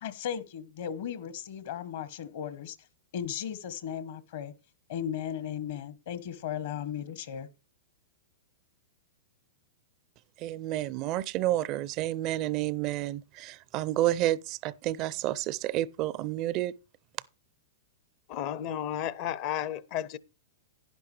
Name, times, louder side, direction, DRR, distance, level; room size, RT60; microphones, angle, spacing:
voice 1, 0.0-2.8 3.1-4.5 4.9-7.5, left 9 dB, 65° left, 1.2 m, -36 dB
voice 2, 10.4-16.7, right 14 dB, 40° right, 0.4 m, -30 dB
voice 3, 18.3-20.2, left 11 dB, 45° left, 0.6 m, -33 dB
11.0 x 10.5 x 3.3 m
hypercardioid pair, 110°, 0 cm